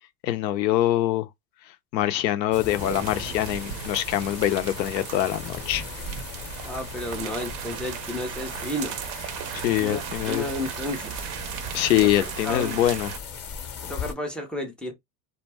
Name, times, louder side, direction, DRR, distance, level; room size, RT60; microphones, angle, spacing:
voice 1, 0.2-1.3 1.9-5.8 9.5-10.4 11.7-13.1, left 13 dB, 80° left, 0.6 m, -24 dB
sound 1, 2.5-14.1, left 7 dB, 30° left, 0.8 m, -39 dB
sound 2, 2.8-13.2, right 10 dB, 45° right, 0.5 m, -36 dB
voice 2, 6.6-9.0 9.8-11.3 12.0-12.1 12.4-12.8 13.8-14.9, left 1 dB, ahead, 0.3 m, -32 dB
2.2 x 2.1 x 3.3 m
hypercardioid pair, 90°, 50 cm